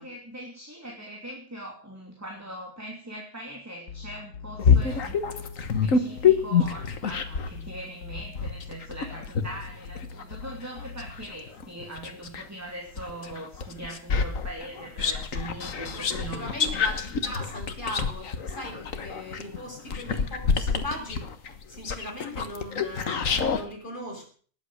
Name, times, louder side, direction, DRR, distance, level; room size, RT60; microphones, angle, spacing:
voice 1, 0.0-5.2 5.8-16.6 18.6-18.8, right 1 dB, 10° right, 0 dB, 3.0 m, -41 dB
sound 1, 3.9-11.2, left 5 dB, 90° left, 1.7 m, -43 dB
sound 2, 4.6-7.6 8.1-12.5 13.0-23.6, left 6 dB, 60° left, 1.7 m, -27 dB
voice 2, 16.3-21.2 21.7-24.3, left 1 dB, 35° left, 0 dB, 6.0 m, -38 dB
20.0 x 8.5 x 6.5 m, 0.43 s
omnidirectional pair, 1.6 m